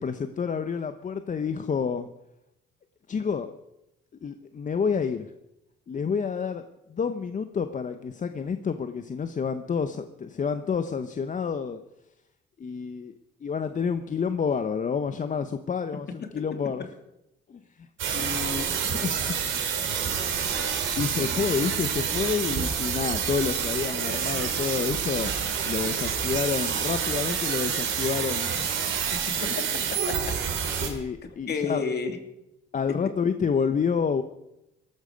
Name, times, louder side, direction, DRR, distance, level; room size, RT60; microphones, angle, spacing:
voice 1, 0.0-2.1 3.1-3.5 4.2-5.3 5.9-11.8 12.6-13.1 13.4-16.9 17.5-19.4 20.4-25.3 25.6-28.7 29.5-29.6 30.8-31.8 32.7-34.2, left 6 dB, 40° left, 9 dB, 0.9 m, -29 dB
sound 1, 18.0-30.9, right 7 dB, 75° right, 3.2 m, -28 dB
voice 2, 29.1-30.4 31.5-32.2, left 5 dB, 55° left, 6 dB, 2.7 m, -32 dB
18.5 x 14.0 x 5.2 m, 0.88 s
cardioid pair, 90°, 20 cm